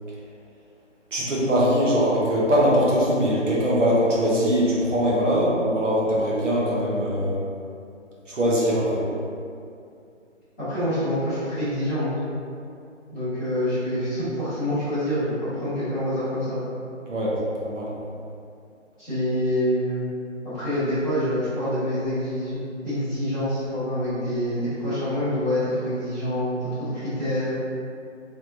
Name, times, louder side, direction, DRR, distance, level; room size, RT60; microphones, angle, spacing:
voice 1, 1.1-7.4 8.3-9.0 17.1-17.9, equal, 70° right, -7 dB, 1.1 m, -22 dB
voice 2, 10.6-12.1 13.1-16.6 19.0-20.1 20.4-22.6 22.8-27.5, equal, 5° left, -23 dB, 0.8 m, -26 dB
3.2 x 3.0 x 2.6 m, 2.5 s
figure-of-eight pair, 155°, 38 cm